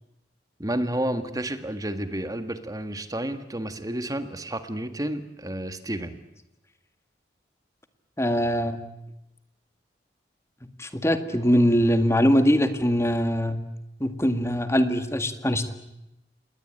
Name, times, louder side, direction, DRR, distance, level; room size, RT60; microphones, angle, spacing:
voice 1, 0.6-6.2, right 1 dB, 20° right, 9 dB, 1.7 m, -31 dB
voice 2, 8.2-8.8 10.8-13.6 14.0-15.7, equal, 15° left, 8 dB, 1.9 m, -22 dB
28.0 x 21.0 x 9.0 m, 0.88 s
head